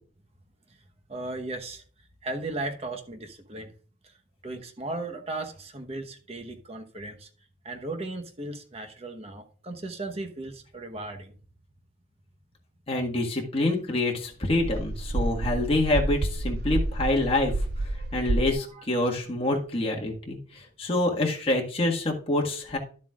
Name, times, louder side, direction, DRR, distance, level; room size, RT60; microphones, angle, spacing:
voice 1, 1.1-1.8 2.2-3.7 4.0-4.1 4.4-7.3 7.6-11.3 18.6-18.8, right 2 dB, 35° right, 1.1 m, -36 dB
voice 2, 12.9-17.5 18.1-22.8, left 2 dB, 30° left, 1.7 m, -26 dB
sound 1, 14.5-18.5, right 2 dB, 55° right, 0.5 m, -29 dB
11.5 x 7.3 x 2.4 m
head